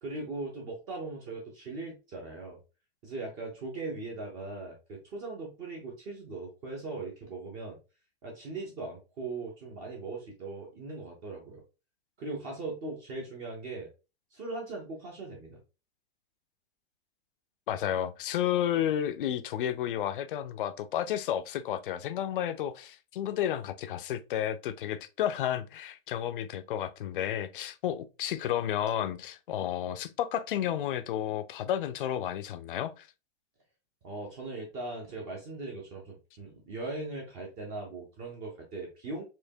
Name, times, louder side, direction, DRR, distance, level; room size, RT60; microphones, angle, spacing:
voice 1, 0.0-2.6 3.0-7.8 8.2-11.6 12.2-13.9 14.3-15.6 34.0-39.2, right 3 dB, 15° right, 0.4 m, -39 dB
voice 2, 17.7-33.1, left 10 dB, 55° left, 0.5 m, -32 dB
4.4 x 2.8 x 2.7 m
supercardioid pair, 165°, 32 cm